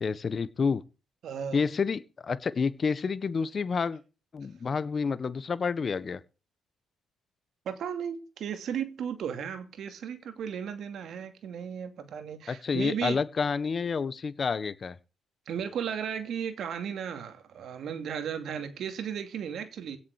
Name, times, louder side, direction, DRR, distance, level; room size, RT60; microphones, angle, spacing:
voice 1, 0.0-0.8 1.5-4.0 4.3-6.2 12.5-15.0, left 5 dB, 40° left, 1.3 m, -29 dB
voice 2, 1.2-1.6 7.7-13.2 15.5-20.0, right 8 dB, 70° right, 2.6 m, -35 dB
17.0 x 7.4 x 6.6 m
cardioid pair, 90°, 0 cm